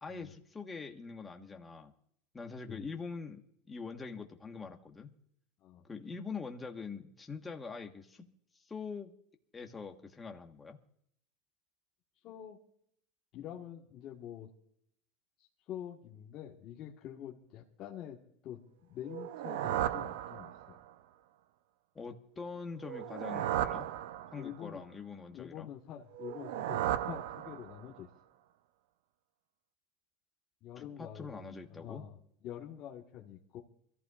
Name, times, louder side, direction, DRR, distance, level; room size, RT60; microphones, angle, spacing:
voice 1, 0.0-1.9 2.3-3.4 3.7-5.2 5.8-8.2 8.6-9.1 9.5-10.8 21.9-23.9 24.3-25.7 30.8-32.1, left 4 dB, 10° left, 3 dB, 1.3 m, -44 dB
voice 2, 12.2-12.6 13.3-14.5 15.4-20.8 24.3-24.8 25.3-28.1 30.6-31.4 31.7-32.1 32.4-33.6, left 10 dB, 35° left, -4 dB, 1.5 m, -46 dB
sound 1, 19.1-20.9 22.8-24.7 26.1-28.0, right 12 dB, 80° right, 0.6 m, -36 dB
26.0 x 14.5 x 2.5 m, 0.68 s
supercardioid pair, 160°, 0 cm